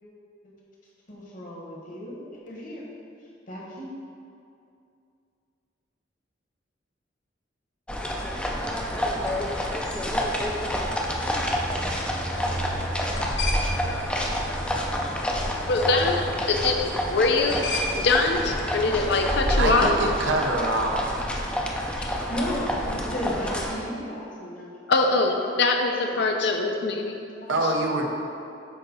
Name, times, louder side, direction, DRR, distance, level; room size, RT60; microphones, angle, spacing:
voice 1, 1.1-2.8 3.5-3.9 22.3-24.8 25.2-25.6 26.1-26.3 27.4-27.6, equal, 45° left, -3 dB, 1.2 m, -34 dB
sound 1, 7.9-23.8, equal, 5° left, 0.4 m, -28 dB
sound 2, 9.0-20.3, left 2 dB, 85° left, 1.0 m, -39 dB
voice 2, 15.7-17.7 17.9-19.9 22.0-22.1 24.9-27.2, left 3 dB, 65° left, 3 dB, 0.5 m, -23 dB
voice 3, 19.6-21.2 27.5-28.1, right 2 dB, 85° right, 1 dB, 0.8 m, -25 dB
7.7 x 2.9 x 5.3 m, 2.5 s
head